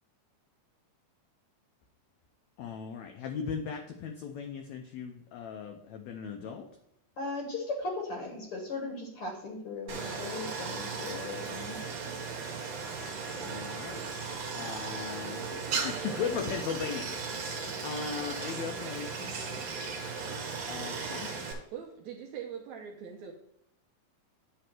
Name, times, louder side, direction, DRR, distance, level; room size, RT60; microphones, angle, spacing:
voice 1, 2.6-6.7 13.3-14.0 14.5-19.6 20.7-21.4, left 6 dB, 85° left, 4 dB, 1.6 m, -38 dB
voice 2, 7.2-11.8, left 3 dB, 60° left, 0 dB, 1.6 m, -37 dB
Stream, 9.9-21.5, right 5 dB, 60° right, 2.1 m, -36 dB
voice 3, 21.3-23.3, right 8 dB, 75° right, 1 dB, 1.8 m, -43 dB
9.3 x 3.3 x 5.9 m, 0.75 s
omnidirectional pair, 3.9 m